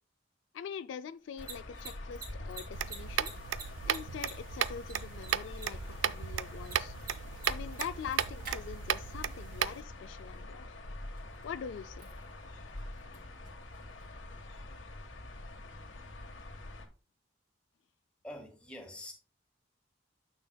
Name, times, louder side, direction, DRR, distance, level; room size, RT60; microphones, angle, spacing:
voice 1, 0.5-3.3 3.9-7.0 7.5-10.8 11.4-12.1, left 7 dB, 70° left, 0.3 m, -43 dB
Mechanisms, 1.2-14.8, right 4 dB, 50° right, 2.6 m, -52 dB
sound 1, 1.4-16.9, left 2 dB, 85° left, 1.3 m, -46 dB
sound 2, 2.7-9.8, right 9 dB, 75° right, 0.4 m, -35 dB
voice 2, 18.2-19.1, left 1 dB, 5° left, 1.6 m, -45 dB
9.4 x 6.6 x 2.2 m
head